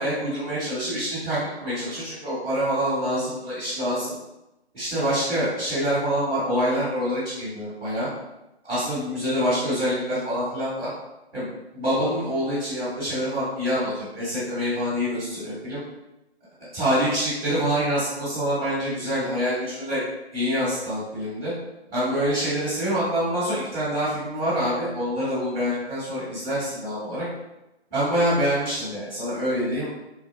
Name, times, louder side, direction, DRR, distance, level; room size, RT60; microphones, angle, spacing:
voice 1, 0.0-4.1 4.7-8.1 8.6-10.9 11.3-15.8 16.7-20.0 20.3-21.5 21.9-27.3 27.9-29.9, equal, 10° right, -18 dB, 0.7 m, -26 dB
3.5 x 2.1 x 2.3 m, 0.94 s
figure-of-eight pair, 155°, 34 cm